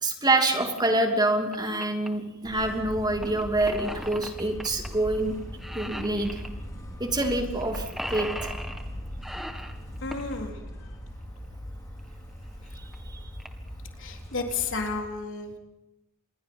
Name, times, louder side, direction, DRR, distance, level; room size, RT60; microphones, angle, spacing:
voice 1, 0.0-5.4 5.7-6.4 7.0-8.5, right 2 dB, 20° right, 4 dB, 2.9 m, -26 dB
sound 1, 0.8-0.9 1.3-2.1 3.2-4.9 5.2-5.3 5.6-6.5 7.2-7.3 7.6-8.9 9.2-10.3 12.0-12.1 12.7-12.8 12.9-13.0 13.4-13.7 14.2-14.5, equal, ahead, 1.9 m, -38 dB
sound 2, 2.4-15.0, equal, 15° left, 5.2 m, -40 dB
voice 2, 10.0-11.0 14.0-15.6, left 4 dB, 65° left, 2 dB, 3.9 m, -33 dB
27.0 x 22.0 x 5.6 m, 0.96 s
head